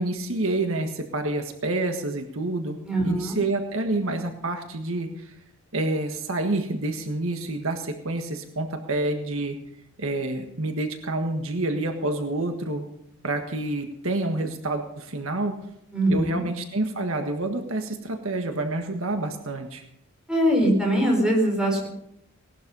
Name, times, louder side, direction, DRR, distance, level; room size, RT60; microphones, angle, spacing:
voice 1, 0.0-5.3 5.7-9.6 10.0-12.9 13.2-15.6 16.1-19.8, right 2 dB, 65° right, 5 dB, 1.6 m, -28 dB
voice 2, 2.9-3.4 15.9-16.4 20.3-21.9, right 1 dB, 5° right, -1 dB, 4.5 m, -22 dB
18.5 x 12.0 x 5.5 m, 0.79 s
head